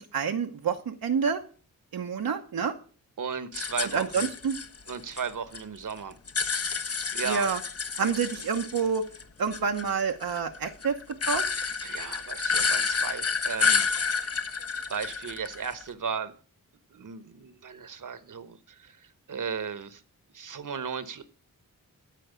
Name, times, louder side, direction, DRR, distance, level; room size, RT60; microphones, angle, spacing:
voice 1, 0.0-1.4 1.9-2.7 3.8-4.6 7.2-7.6 8.0-9.0 9.4-11.0 11.3-11.4, right 6 dB, 80° right, 3 dB, 1.0 m, -28 dB
voice 2, 3.2-4.3 4.9-6.1 6.7-6.9 7.1-7.5 11.8-13.9 14.9-16.3 16.9-19.0 19.3-20.0 20.3-21.2, right 6 dB, 60° right, 12 dB, 1.2 m, -35 dB
sound 1, 3.5-5.6 5.9-9.2 9.5-15.9, left 5 dB, 40° left, 1.0 m, -30 dB
13.0 x 4.6 x 8.2 m, 0.41 s
cardioid pair, 65°, 36 cm